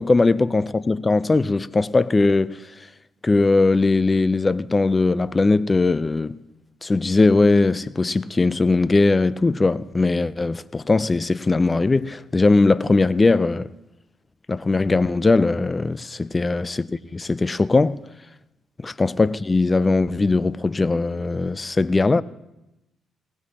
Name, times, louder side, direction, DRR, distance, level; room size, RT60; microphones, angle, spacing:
voice 1, 0.0-2.6 3.2-6.4 6.8-13.7 14.5-18.0 18.8-22.2, left 3 dB, 25° left, 0.4 m, -20 dB
20.5 x 18.0 x 2.9 m
cardioid pair, 90°, 0 cm